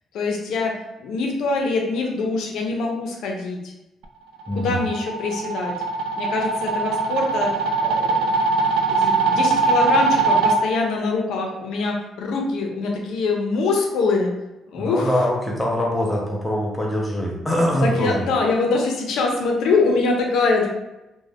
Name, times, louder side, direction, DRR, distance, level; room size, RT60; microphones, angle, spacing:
voice 1, 0.1-0.7 1.0-3.7 4.5-5.7 6.2-7.5 7.8-8.3 9.0-14.3 14.7-15.2 17.8-20.7, left 3 dB, 70° left, 0 dB, 0.5 m, -23 dB
sound 1, 4.4-10.6, right 4 dB, 80° right, 0.3 m, -21 dB
voice 2, 4.5-4.8 14.7-18.3, equal, 5° left, -3 dB, 0.4 m, -23 dB
2.4 x 2.1 x 3.3 m, 0.96 s
cardioid pair, 160°, 0 cm